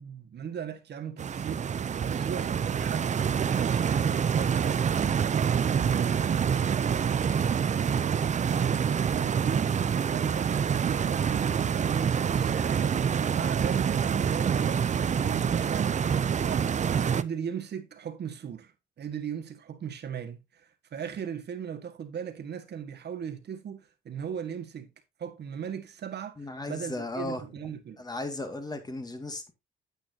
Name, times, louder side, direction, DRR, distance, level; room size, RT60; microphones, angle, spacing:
voice 1, 0.0-5.3 5.7-7.7 8.4-12.9 13.3-16.7 17.1-18.7 19.0-24.9 25.2-28.0, right 8 dB, 60° right, 1.8 m, -38 dB
Stream, 1.2-17.2, right 7 dB, 35° right, 0.6 m, -26 dB
voice 2, 26.4-27.4 28.0-29.5, left 2 dB, 20° left, 2.2 m, -35 dB
9.4 x 8.7 x 2.8 m
cardioid pair, 90°, 20 cm